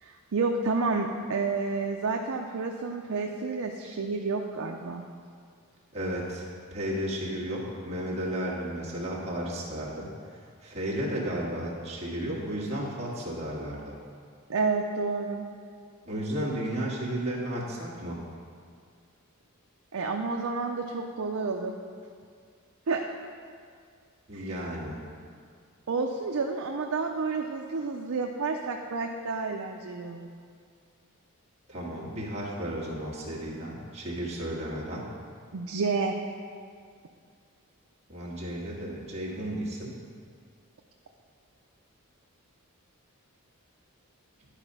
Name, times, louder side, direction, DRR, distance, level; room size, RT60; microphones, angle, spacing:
voice 1, 0.0-5.0 14.5-15.4 19.9-21.7 22.9-23.0 24.3-24.5 25.9-30.3 35.5-36.2, right 4 dB, 70° right, 2 dB, 0.5 m, -30 dB
voice 2, 5.9-14.0 16.0-18.2 24.3-25.0 31.7-35.1 38.1-40.0, right 1 dB, 30° right, -6 dB, 1.7 m, -33 dB
11.0 x 5.0 x 5.4 m, 2.1 s
head